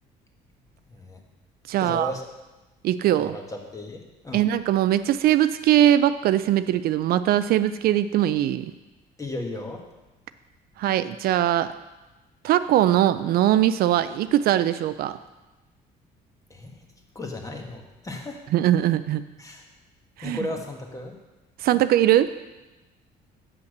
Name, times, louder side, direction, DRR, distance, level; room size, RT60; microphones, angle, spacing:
voice 1, 0.9-1.2 1.8-2.2 3.2-4.5 9.2-9.9 16.5-16.7 17.1-18.4 19.4-19.7 20.2-21.1, left 1 dB, 20° left, 2 dB, 1.5 m, -35 dB
voice 2, 1.7-2.1 2.8-3.4 4.3-8.7 10.8-11.7 12.4-15.2 18.5-19.2 20.2-20.4 21.6-22.3, right 12 dB, 65° right, 13 dB, 0.4 m, -21 dB
8.2 x 5.7 x 6.6 m, 1.1 s
cardioid pair, 110°, 17 cm